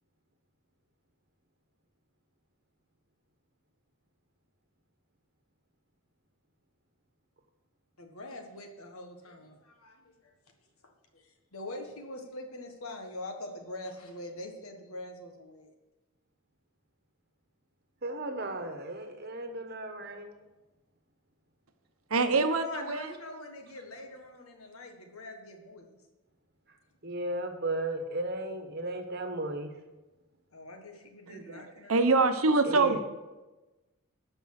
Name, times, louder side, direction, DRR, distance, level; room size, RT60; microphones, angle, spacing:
voice 1, 8.0-10.3 11.1-15.7 22.3-26.0 30.5-32.2, left 2 dB, 80° left, 4 dB, 1.6 m, -43 dB
voice 2, 18.0-20.3 27.0-29.7 32.6-33.0, right 1 dB, 45° right, 6 dB, 1.2 m, -35 dB
voice 3, 22.1-23.1 31.3-31.6 31.9-33.0, right 3 dB, 80° right, 9 dB, 0.9 m, -25 dB
12.0 x 5.4 x 6.5 m, 1.1 s
head